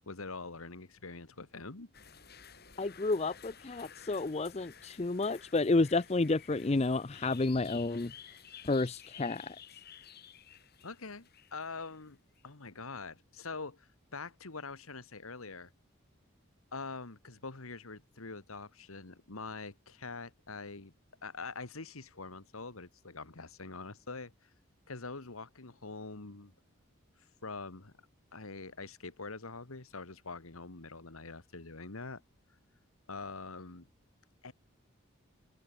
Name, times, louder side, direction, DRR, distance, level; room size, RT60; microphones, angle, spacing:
voice 1, 0.1-1.9 10.8-12.2 12.4-15.7 16.7-20.9 21.2-24.3 24.9-26.5 27.4-27.9 28.3-32.2 33.1-33.9 34.4-34.5, left 4 dB, 80° left, 1.8 m, -44 dB
sound 1, 1.9-12.4, left 8 dB, 45° left, 8.0 m, -54 dB
voice 2, 2.8-8.1 8.6-9.6, left 3 dB, 30° left, 0.5 m, -30 dB
head